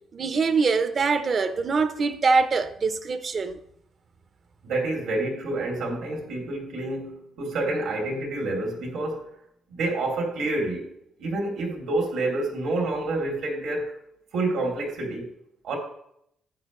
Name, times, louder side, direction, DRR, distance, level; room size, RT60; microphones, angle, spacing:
voice 1, 0.1-3.6, right 4 dB, 45° right, 0.9 m, -23 dB
voice 2, 4.6-9.2 9.7-10.9 11.2-14.0 14.3-15.3 15.6-15.8, right 2 dB, 85° right, 3.2 m, -28 dB
11.5 x 8.3 x 3.2 m
cardioid pair, 90°, 0 cm